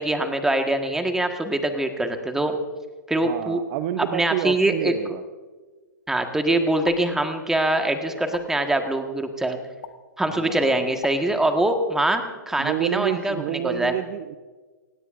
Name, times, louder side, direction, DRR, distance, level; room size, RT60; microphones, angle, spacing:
voice 1, 0.0-2.6 3.1-3.6 4.1-4.9 6.1-9.6 10.2-13.9, right 1 dB, 5° right, 5 dB, 1.5 m, -23 dB
voice 2, 3.2-5.2 10.3-10.8 12.6-14.4, right 12 dB, 40° right, 11 dB, 0.8 m, -28 dB
sound 1, 6.8-7.0 8.3-8.5 9.8-9.9 11.0-11.2, left 9 dB, 65° left, 1.6 m, -35 dB
28.5 x 16.5 x 2.6 m, 1.4 s
hypercardioid pair, 125°, 10 cm